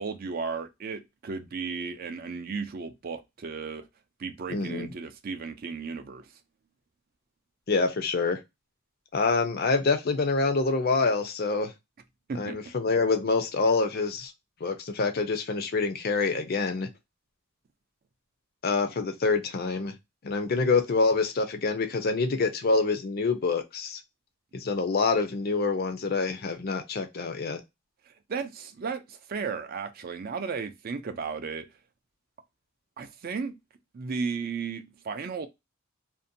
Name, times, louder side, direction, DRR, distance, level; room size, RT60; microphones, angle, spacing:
voice 1, 0.0-3.8 4.2-6.2 12.3-12.6 28.3-31.7 33.0-33.5 33.9-35.5, right 5 dB, 45° right, 0.4 m, -34 dB
voice 2, 4.5-4.9 7.7-8.4 9.1-11.7 12.3-14.3 14.6-16.9 18.6-20.0 20.2-24.0 24.5-27.6, left 4 dB, 45° left, 0.5 m, -26 dB
2.6 x 2.1 x 2.6 m
head